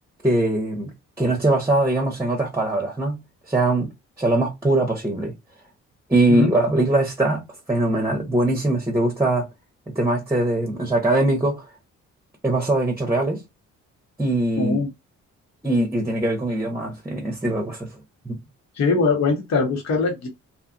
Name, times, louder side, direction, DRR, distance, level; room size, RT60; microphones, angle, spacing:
voice 1, 0.2-0.9 1.2-3.2 3.5-3.9 4.2-5.3 6.1-9.5 9.9-11.6 12.4-13.4 14.2-14.8 15.6-17.9 18.2-18.4, right 2 dB, 10° right, 0.8 m, -21 dB
voice 2, 14.6-14.9 18.8-20.3, left 4 dB, 60° left, 1.0 m, -21 dB
2.6 x 2.4 x 2.5 m
cardioid pair, 90°, 30 cm